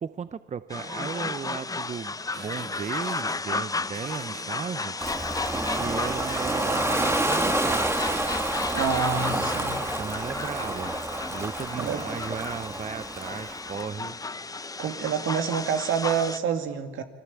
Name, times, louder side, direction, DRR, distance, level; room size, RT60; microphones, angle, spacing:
voice 1, 0.0-5.0 5.5-7.9 9.3-11.0 11.3-14.2, right 6 dB, 35° right, 14 dB, 0.7 m, -36 dB
sound 1, 0.7-16.4, left 3 dB, 20° left, 0.7 m, -33 dB
sound 2, 2.3-3.4 3.9-5.3 5.7-6.4 6.7-8.7, right 6 dB, 55° right, 1.8 m, -45 dB
Ocean, 5.0-13.8, right 1 dB, 10° right, 1.7 m, -29 dB
voice 2, 8.7-9.9 11.7-12.0 14.8-17.0, right 7 dB, 80° right, 7 dB, 2.3 m, -27 dB
29.5 x 21.5 x 8.3 m, 1.4 s
cardioid pair, 90°, 20 cm